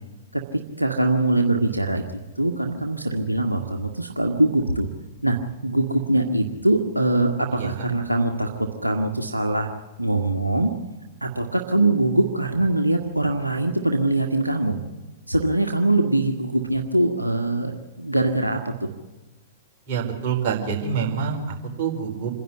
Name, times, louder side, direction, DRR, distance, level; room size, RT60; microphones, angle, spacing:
voice 1, 0.3-2.0 2.4-4.9 5.2-5.4 5.6-9.7 10.0-10.7 11.2-14.8 15.3-18.9, right 2 dB, 85° right, 3 dB, 1.6 m, -22 dB
voice 2, 7.5-7.9 19.9-22.4, right 6 dB, 40° right, 1 dB, 4.6 m, -27 dB
26.5 x 11.0 x 9.6 m, 1.1 s
figure-of-eight pair, 105°, 0 cm